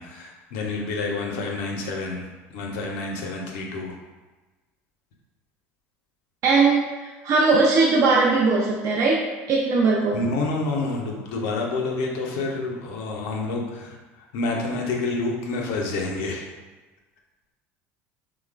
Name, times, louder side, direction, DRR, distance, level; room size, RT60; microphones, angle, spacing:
voice 1, 0.0-2.3 2.5-4.0 10.1-16.5, left 3 dB, 75° left, 0 dB, 0.5 m, -28 dB
voice 2, 6.4-9.2 9.5-10.2, right 3 dB, 50° right, -3 dB, 0.4 m, -19 dB
3.0 x 2.0 x 2.4 m, 1.2 s
hypercardioid pair, 85°, 7 cm